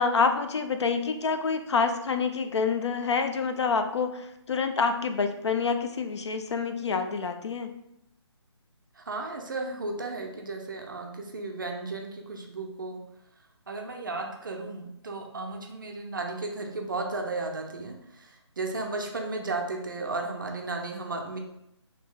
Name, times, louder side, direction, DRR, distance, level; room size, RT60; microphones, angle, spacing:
voice 1, 0.0-7.7, left 5 dB, 70° left, 7 dB, 0.4 m, -27 dB
voice 2, 9.0-13.0 13.7-21.4, right 3 dB, 45° right, 2 dB, 0.4 m, -34 dB
2.7 x 2.0 x 3.6 m, 0.81 s
hypercardioid pair, 170°, 15 cm